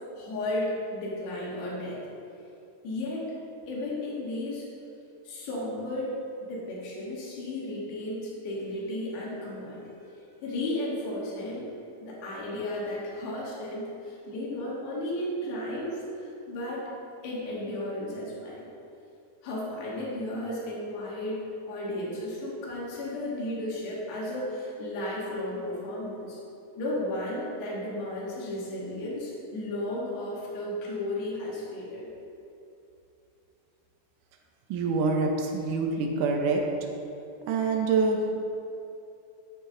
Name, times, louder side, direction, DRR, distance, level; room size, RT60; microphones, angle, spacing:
voice 1, 0.1-2.0 2.8-3.3 3.7-4.7 5.3-6.2 6.5-9.9 10.4-11.7 12.0-16.9 17.2-18.7 19.4-26.4 26.8-32.1, left 1 dB, 75° left, -5 dB, 4.3 m, -34 dB
voice 2, 34.7-36.6 37.4-38.4, right 4 dB, 70° right, 2 dB, 2.0 m, -26 dB
12.5 x 9.8 x 3.9 m, 2.8 s
omnidirectional pair, 4.9 m